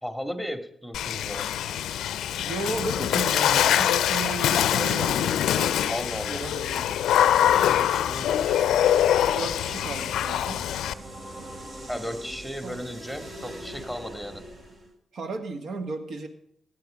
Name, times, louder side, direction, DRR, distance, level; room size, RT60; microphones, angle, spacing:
voice 1, 0.0-1.5 5.9-6.4 7.4-8.6 11.9-14.4, equal, 5° right, 7 dB, 2.4 m, -35 dB
Water / Splash splatter, 0.9-10.9, left 10 dB, 85° left, 0.4 m, -24 dB
voice 2, 2.4-5.9 6.3-7.6 9.3-10.6 12.6-12.8 15.1-16.3, right 3 dB, 70° right, 7 dB, 1.7 m, -35 dB
sound 1, 8.0-14.9, right 1 dB, 50° right, 2.7 m, -42 dB
16.0 x 10.5 x 5.1 m, 0.71 s
supercardioid pair, 55°, 0 cm